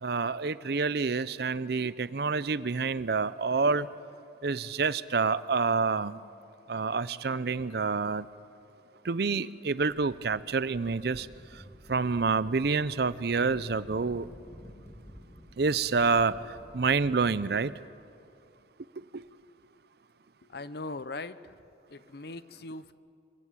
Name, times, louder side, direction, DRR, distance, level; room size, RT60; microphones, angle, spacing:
voice 1, 0.0-3.9 4.4-6.2 6.7-8.3 9.0-11.3 11.9-14.3 15.6-17.7 19.1-19.2, right 4 dB, 60° right, 0.6 m, -28 dB
sound 1, 9.8-17.6, equal, 15° left, 2.9 m, -51 dB
voice 2, 20.5-21.5 21.9-22.9, left 3 dB, 60° left, 0.8 m, -40 dB
26.0 x 15.5 x 8.5 m
head